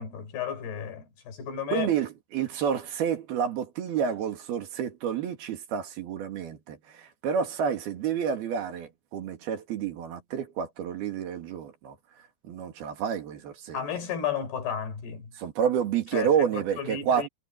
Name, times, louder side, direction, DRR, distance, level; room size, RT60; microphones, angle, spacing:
voice 1, 0.0-1.9 13.7-15.3 16.1-16.5 16.8-17.3, left 8 dB, 80° left, 6.1 m, -33 dB
voice 2, 1.7-12.0 12.4-13.8 15.4-17.3, right 8 dB, 75° right, 4.2 m, -29 dB
omnidirectional pair, 4.5 m